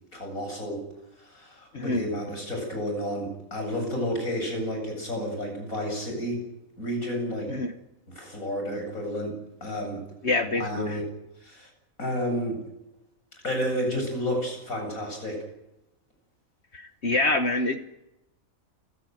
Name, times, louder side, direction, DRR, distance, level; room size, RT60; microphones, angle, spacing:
voice 1, 0.1-0.8 1.3-6.4 6.8-7.5 8.2-10.0 10.4-11.0 11.4-11.7 12.0-12.6 13.4-15.4, equal, 80° left, 3 dB, 8.7 m, -31 dB
voice 2, 10.2-11.0 16.7-17.8, left 2 dB, 55° left, 7 dB, 1.6 m, -26 dB
29.0 x 16.5 x 9.3 m, 0.91 s
omnidirectional pair, 1.4 m